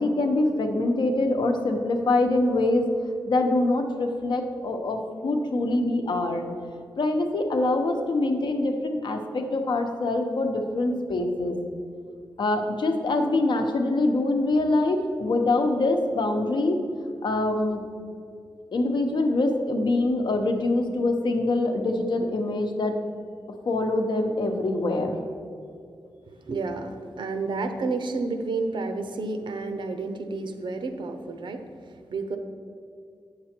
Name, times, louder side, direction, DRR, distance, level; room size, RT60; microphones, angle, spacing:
voice 1, 0.0-2.9 3.3-6.5 7.0-11.6 12.4-16.8 17.2-17.8 18.7-23.0 23.7-25.2, left 2 dB, 65° left, 4 dB, 0.9 m, -24 dB
voice 2, 26.3-31.6 32.1-32.4, right 3 dB, 70° right, 7 dB, 0.8 m, -30 dB
8.8 x 6.9 x 4.4 m, 2.3 s
wide cardioid pair, 130°, 8 cm